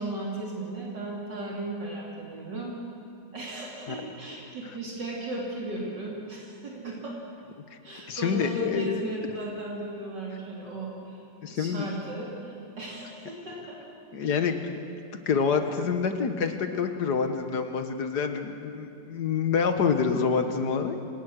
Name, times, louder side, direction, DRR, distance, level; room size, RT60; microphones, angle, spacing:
voice 1, 0.0-2.7 3.3-7.2 7.8-11.2 11.5-13.8 14.2-14.4, right 1 dB, 75° right, -3 dB, 3.7 m, -36 dB
voice 2, 8.1-9.1 11.4-11.9 14.1-14.6 15.3-21.0, left 6 dB, 65° left, 7 dB, 1.9 m, -27 dB
25.0 x 18.5 x 6.4 m, 2.5 s
omnidirectional pair, 1.9 m